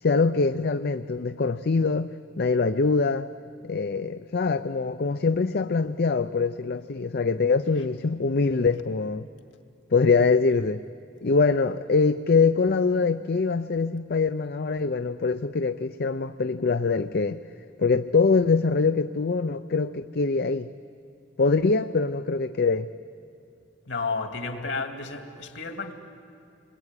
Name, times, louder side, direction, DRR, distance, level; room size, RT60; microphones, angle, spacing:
voice 1, 0.0-3.3 3.6-9.3 9.9-10.8 11.2-17.4 17.8-20.7 21.4-22.9, left 4 dB, 55° left, 10 dB, 0.5 m, -23 dB
voice 2, 23.9-25.9, left 4 dB, 70° left, 5 dB, 2.4 m, -31 dB
28.0 x 21.5 x 9.8 m, 2.7 s
head